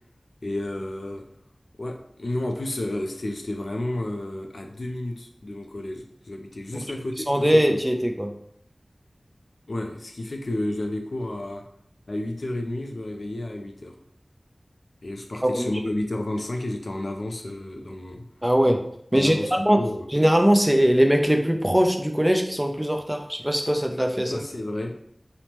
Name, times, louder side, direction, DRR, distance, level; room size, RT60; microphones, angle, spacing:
voice 1, 0.4-1.2 1.8-7.3 7.7-7.8 9.7-11.6 12.1-13.9 15.0-18.3 19.1-20.1 24.3-25.0, left 1 dB, 70° left, 3 dB, 0.3 m, -31 dB
voice 2, 7.3-8.3 15.4-15.7 18.4-19.8 20.1-24.4, equal, 10° right, 3 dB, 0.4 m, -21 dB
2.8 x 2.0 x 3.2 m, 0.69 s
wide cardioid pair, 50°, 0 cm